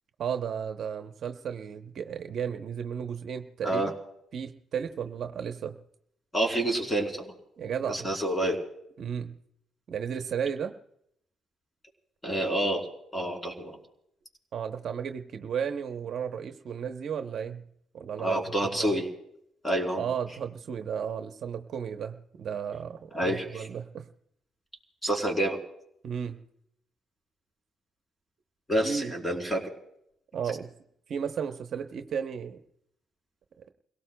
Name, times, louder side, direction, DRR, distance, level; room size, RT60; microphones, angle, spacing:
voice 1, 0.2-3.9 4.3-5.8 7.6-8.1 9.0-9.3 9.9-10.7 14.5-17.6 17.9-19.0 20.0-24.1 26.0-26.4 28.8-29.1 30.3-30.7 31.1-32.6 33.6-33.7, right 7 dB, 60° right, 6 dB, 0.8 m, -34 dB
voice 2, 6.3-7.3 7.9-8.6 12.2-12.9 13.1-13.8 18.2-19.1 19.6-20.0 23.1-23.6 25.0-25.6 28.7-29.6, right 1 dB, 15° left, 1 dB, 3.7 m, -28 dB
29.5 x 17.5 x 2.2 m, 0.75 s
cardioid pair, 90°, 0 cm